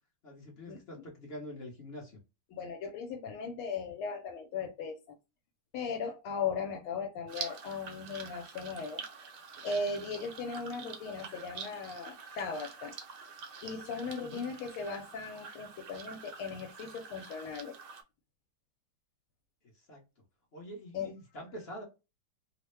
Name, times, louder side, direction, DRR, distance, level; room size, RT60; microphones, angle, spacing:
voice 1, 0.2-2.2 13.9-14.5 19.9-20.0 20.5-21.8, left 1 dB, 45° left, 0.8 m, -45 dB
voice 2, 2.5-5.0 5.7-9.0 9.6-12.9 13.6-17.8 20.9-21.1, left 4 dB, 80° left, 1.4 m, -38 dB
sound 1, 7.3-18.0, right 6 dB, 65° right, 1.1 m, -46 dB
3.3 x 2.1 x 3.1 m
omnidirectional pair, 2.3 m